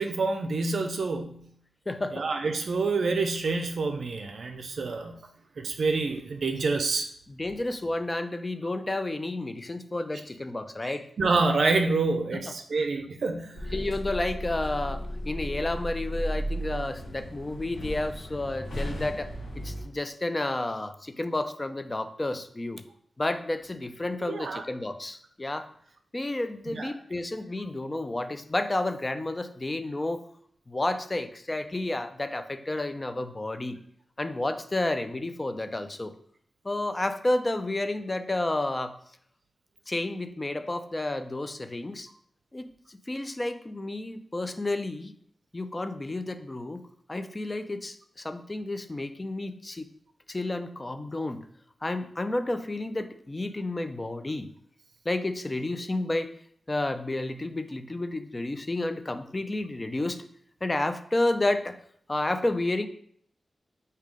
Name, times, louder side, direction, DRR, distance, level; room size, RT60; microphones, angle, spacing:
voice 1, 0.0-1.4 2.1-5.2 5.6-7.1 10.8-13.7 24.3-24.6 26.7-26.9, right 3 dB, 75° right, 5 dB, 0.4 m, -27 dB
voice 2, 1.9-2.2 7.3-11.1 12.3-12.5 13.7-19.3 19.6-22.8 23.2-25.7 26.1-30.3 30.7-33.8 34.2-36.1 36.6-39.0 39.9-42.1 42.5-45.1 45.5-49.9 50.3-51.5 51.8-54.5 55.1-56.3 56.7-60.2 60.6-61.8 62.1-62.9, left 2 dB, 25° left, 9 dB, 0.4 m, -31 dB
sound 1, 13.5-19.9, equal, 85° left, 1.0 m, -35 dB
4.8 x 2.7 x 3.6 m, 0.64 s
wide cardioid pair, 100°, 0 cm